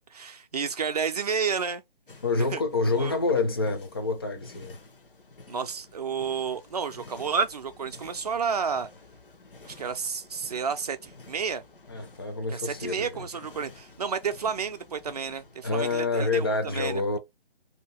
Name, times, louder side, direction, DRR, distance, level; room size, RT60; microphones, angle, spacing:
voice 1, 0.1-1.8 2.5-2.6 3.0-3.2 5.5-8.9 9.6-11.6 12.5-17.2, right 6 dB, 40° right, 0.5 m, -31 dB
sound 1, 2.1-16.0, left 3 dB, 60° left, 0.9 m, -51 dB
voice 2, 2.2-4.8 11.9-13.2 15.6-17.2, left 3 dB, 25° left, 0.5 m, -27 dB
2.8 x 2.6 x 4.3 m
figure-of-eight pair, 145°, 30 cm